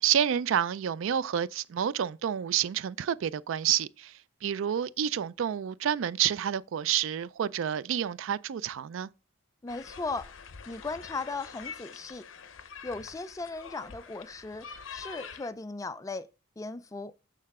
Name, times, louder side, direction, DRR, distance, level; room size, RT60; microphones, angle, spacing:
voice 1, 0.0-4.1 4.4-9.1, right 9 dB, 65° right, 0.3 m, -29 dB
voice 2, 9.6-10.3 10.7-12.3 12.8-16.3 16.6-17.1, left 3 dB, 15° left, 0.3 m, -37 dB
sound 1, 9.7-15.5, left 6 dB, 65° left, 0.7 m, -45 dB
6.6 x 6.5 x 3.6 m
head